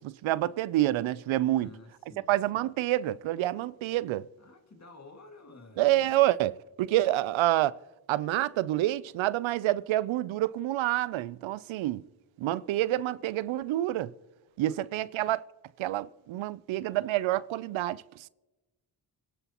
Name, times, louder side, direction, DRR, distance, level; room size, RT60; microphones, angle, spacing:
voice 1, 0.0-1.7 2.2-4.2 5.8-7.8 8.1-12.0 12.4-14.1 14.6-15.4 15.8-18.0, right 15 dB, 75° right, 0.6 m, -28 dB
voice 2, 1.5-2.3 4.4-6.1 14.6-14.8, left 3 dB, 35° left, 2.3 m, -51 dB
29.0 x 11.0 x 3.0 m
cardioid pair, 65°, 47 cm